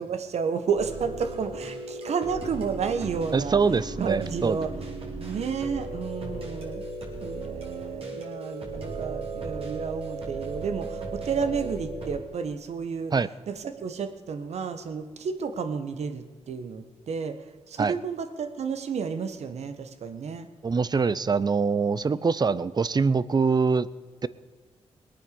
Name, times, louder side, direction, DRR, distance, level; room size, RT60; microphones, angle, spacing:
voice 1, 0.0-3.6 4.0-4.7 5.1-6.8 7.2-13.1 13.5-20.5 22.1-22.3, right 6 dB, 75° right, 9 dB, 1.5 m, -31 dB
sound 1, 0.7-12.2, right 3 dB, 60° right, 4.3 m, -36 dB
voice 2, 3.3-4.6 13.1-13.3 17.8-17.9 20.6-23.9 24.2-24.3, right 5 dB, 40° right, 17 dB, 0.7 m, -24 dB
20.0 x 9.1 x 6.9 m, 1.4 s
cardioid pair, 75°, 11 cm